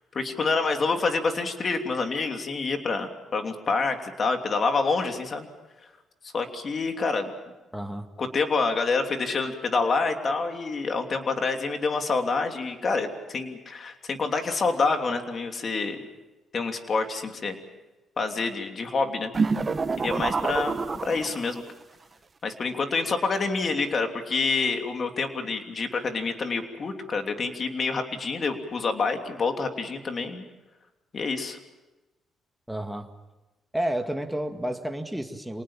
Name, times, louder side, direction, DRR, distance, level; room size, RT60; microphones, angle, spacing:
voice 1, 0.1-5.5 6.3-7.3 8.2-16.0 16.5-17.6 18.2-19.3 20.0-21.6 22.4-30.4 31.1-31.6, left 4 dB, 45° left, 5 dB, 3.0 m, -27 dB
voice 2, 7.7-8.1 32.7-33.1 33.7-35.6, right 1 dB, 5° right, 5 dB, 2.1 m, -30 dB
sound 1, 19.3-21.7, right 4 dB, 35° right, 1.2 m, -27 dB
27.0 x 19.0 x 7.4 m, 1.1 s
cardioid pair, 90°, 0 cm